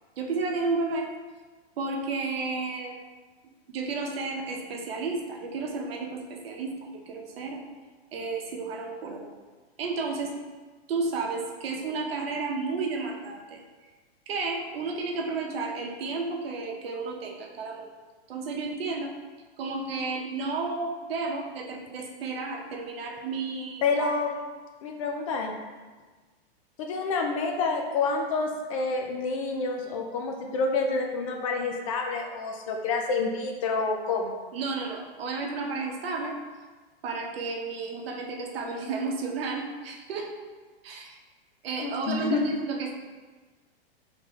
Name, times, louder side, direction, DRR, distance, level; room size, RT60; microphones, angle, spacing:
voice 1, 0.2-1.1 1.8-3.0 3.7-7.6 8.1-9.3 9.8-10.3 10.9-13.6 14.3-17.9 18.3-19.2 19.6-24.1 34.5-36.4 37.0-40.3 40.8-41.2 41.6-42.9, right 3 dB, 70° right, 1 dB, 0.9 m, -32 dB
voice 2, 23.8-24.4 24.8-25.5 26.8-34.4 41.8-42.4, left 4 dB, 35° left, 3 dB, 0.4 m, -28 dB
5.2 x 3.6 x 2.3 m, 1.3 s
hypercardioid pair, 150°, 31 cm